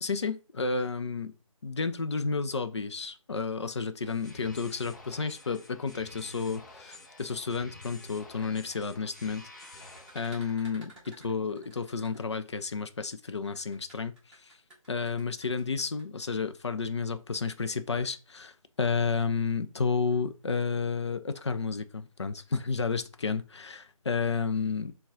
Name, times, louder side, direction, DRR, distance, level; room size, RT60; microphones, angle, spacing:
voice 1, 0.0-1.3 1.6-14.6 14.9-24.9, left 5 dB, 50° left, 0.5 m, -31 dB
sound 1, 4.0-10.5, left 2 dB, 35° left, 0.8 m, -49 dB
sound 2, 8.2-12.7 13.4-16.0, right 1 dB, 5° right, 1.1 m, -54 dB
5.9 x 2.3 x 3.6 m
figure-of-eight pair, 155°, 18 cm